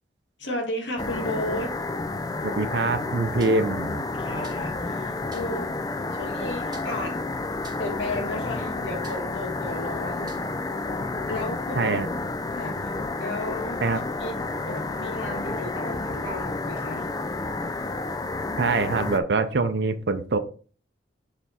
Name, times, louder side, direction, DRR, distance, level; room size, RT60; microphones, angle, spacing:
voice 1, 0.4-1.8 4.2-5.8 6.1-7.2 7.8-10.3 11.3-12.0 12.5-13.8 14.1-17.1, left 1 dB, 80° left, 1.7 m, -34 dB
sound 1, 1.0-19.2, left 3 dB, 20° left, 0.4 m, -30 dB
voice 2, 2.6-4.1 11.8-12.1 13.8-14.0 18.6-20.4, right 3 dB, 65° right, 0.6 m, -24 dB
sound 2, 3.4-3.7 4.4-4.8 5.3-5.6 6.7-7.2 7.6-8.0 9.0-9.4 10.3-10.5, right 4 dB, 25° right, 1.1 m, -48 dB
6.9 x 3.4 x 4.2 m
head